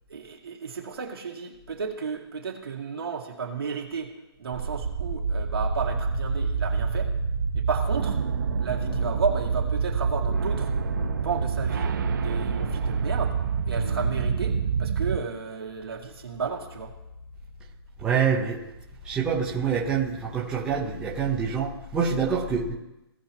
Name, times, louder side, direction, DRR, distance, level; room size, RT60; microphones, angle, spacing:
voice 1, 0.1-4.1 4.4-7.1 7.5-8.2 8.6-10.7 11.2-11.9 12.2-13.4 13.7-16.9, right 5 dB, 65° right, 0 dB, 2.2 m, -33 dB
sound 1, 4.5-15.2, right 5 dB, 50° right, 0.8 m, -27 dB
Keyboard (musical), 8.8-9.5 10.9-12.5 13.7-20.8, left 2 dB, 60° left, 2.8 m, -43 dB
voice 2, 18.0-18.6 19.0-22.7, right 6 dB, 5° right, -5 dB, 0.8 m, -26 dB
17.5 x 5.9 x 2.9 m, 0.94 s
hypercardioid pair, 170°, 13 cm